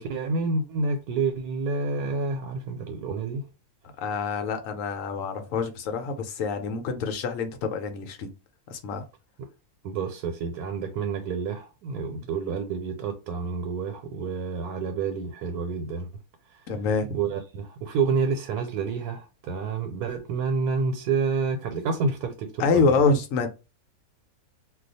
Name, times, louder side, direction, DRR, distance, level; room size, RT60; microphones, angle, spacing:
voice 1, 0.0-3.4 9.8-16.1 17.1-23.0, right 4 dB, 90° right, 1.2 m, -29 dB
voice 2, 4.0-8.3 8.7-9.0 16.7-17.2 22.6-23.5, left 4 dB, 70° left, 0.9 m, -26 dB
2.4 x 2.3 x 3.9 m
omnidirectional pair, 1.6 m